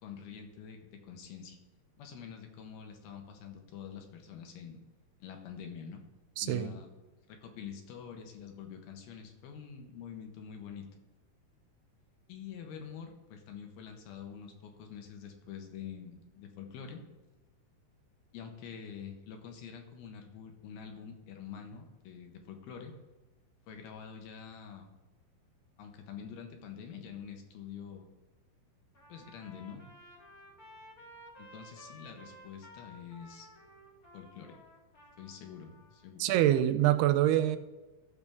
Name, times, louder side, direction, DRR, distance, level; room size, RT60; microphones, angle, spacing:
voice 1, 0.0-1.6 2.0-4.8 5.2-6.0 6.4-6.9 7.3-10.9 12.3-17.0 18.3-22.9 23.7-24.9 25.8-28.1 29.1-29.8 31.4-33.5 34.1-34.6 35.2-36.4, left 7 dB, 75° left, 4 dB, 3.0 m, -46 dB
voice 2, 6.4-6.8 36.2-37.6, right 13 dB, 85° right, 12 dB, 2.6 m, -25 dB
Trumpet, 28.9-36.0, equal, 50° left, 1.0 m, -55 dB
14.5 x 7.0 x 3.5 m, 1.2 s
omnidirectional pair, 4.6 m